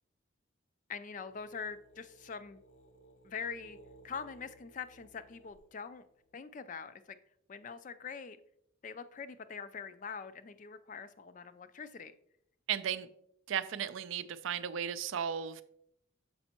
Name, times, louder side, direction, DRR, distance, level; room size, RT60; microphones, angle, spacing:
voice 1, 0.9-2.6 3.2-3.8 4.0-6.0 6.3-7.0 7.5-8.4 8.8-12.1, left 6 dB, 40° left, 12 dB, 0.4 m, -43 dB
sound 1, 1.3-6.4, right 1 dB, 65° left, 0.9 m, -60 dB
voice 2, 12.7-13.1 13.5-15.6, right 8 dB, 75° right, 13 dB, 0.4 m, -35 dB
6.9 x 5.2 x 2.9 m, 0.72 s
head